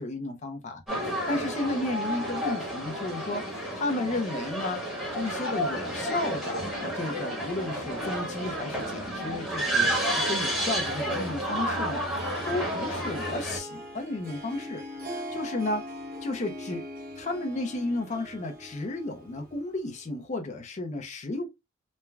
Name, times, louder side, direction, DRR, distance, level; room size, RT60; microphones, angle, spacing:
voice 1, 0.0-6.6 6.9-15.8 16.2-16.8 17.2-21.5, left 2 dB, 35° left, 0.5 m, -33 dB
sound 1, 0.9-13.6, right 1 dB, ahead, 1.0 m, -31 dB
Harp, 12.1-19.9, equal, 45° right, 0.7 m, -41 dB
3.2 x 2.2 x 2.2 m
head